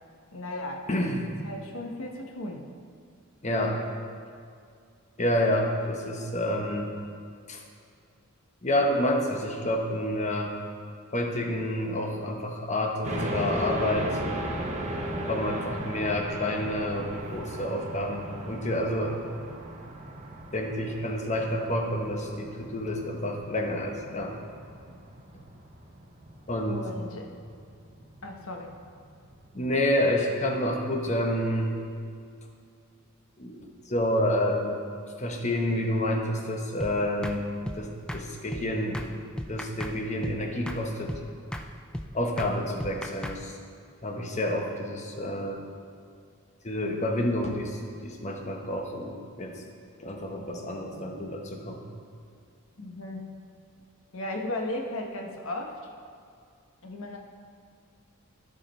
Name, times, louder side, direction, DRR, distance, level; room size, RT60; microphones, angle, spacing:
voice 1, 0.3-0.8 1.4-2.7 26.7-27.3 28.2-28.8 52.8-53.3 54.1-55.7 56.8-57.2, left 1 dB, 75° left, 2 dB, 1.1 m, -35 dB
voice 2, 0.9-1.3 3.4-3.8 5.2-6.9 7.5-7.6 8.6-10.5 11.1-14.1 15.3-19.4 20.5-24.3 26.5-26.8 29.5-31.8 33.4-34.8 35.2-37.5 37.7-39.1 39.5-41.2 42.1-43.5 44.0-45.6 46.6-49.6 50.0-51.9, left 1 dB, 35° left, 2 dB, 0.9 m, -29 dB
sound 1, 13.0-29.7, right 1 dB, 35° right, 0.9 m, -37 dB
sound 2, 36.8-36.9 37.2-37.4 37.6-37.8 38.1-38.2 38.5-38.6 38.9-39.1 39.4-39.9 40.2-40.4 40.7-40.8 41.1-41.2 41.5-41.7 41.9-42.1 42.4-42.5 42.8-43.4, equal, 5° left, 0.3 m, -35 dB
13.5 x 4.9 x 4.3 m, 2.3 s
head